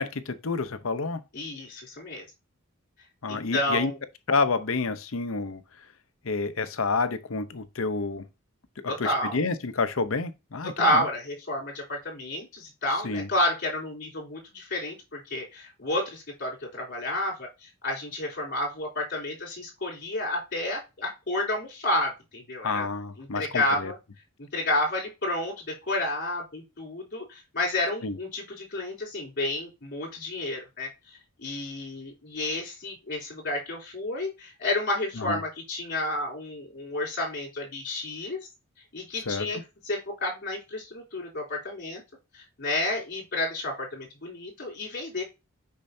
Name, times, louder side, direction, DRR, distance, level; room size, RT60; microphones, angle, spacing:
voice 1, 0.0-1.2 3.2-3.9 4.3-5.6 6.2-8.2 8.8-11.0 13.0-13.3 22.6-23.9 28.0-28.2 35.2-35.4 39.3-39.6, left 4 dB, 70° left, 0.8 m, -29 dB
voice 2, 1.3-2.3 3.3-4.0 8.9-9.4 10.6-17.5 17.8-22.9 23.2-24.0 24.4-30.9 31.4-38.4 38.9-42.0 42.3-45.2, left 1 dB, 55° left, 3.5 m, -30 dB
6.8 x 5.6 x 2.7 m
head